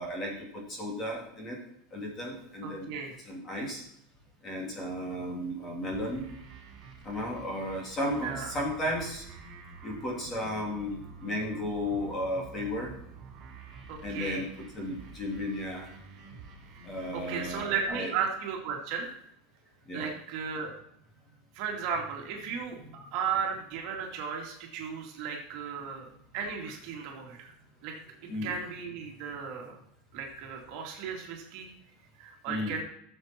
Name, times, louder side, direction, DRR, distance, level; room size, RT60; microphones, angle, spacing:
voice 1, 0.0-1.6 1.9-2.9 3.3-3.8 4.4-6.3 7.0-9.2 9.8-12.9 14.0-15.9 16.8-18.1 19.9-20.1 28.3-28.5 32.5-32.8, left 1 dB, 20° left, -1 dB, 2.8 m, -34 dB
voice 2, 2.6-3.2 8.2-8.5 13.9-14.4 17.1-19.1 19.9-20.7 21.5-26.1 26.3-27.5 27.8-27.9 28.4-29.8 30.1-31.7 32.2-32.8, right 6 dB, 45° right, 1 dB, 2.4 m, -35 dB
sound 1, 5.9-17.9, right 4 dB, 25° right, 4.8 m, -48 dB
14.5 x 7.2 x 4.4 m, 0.73 s
supercardioid pair, 175°, 0 cm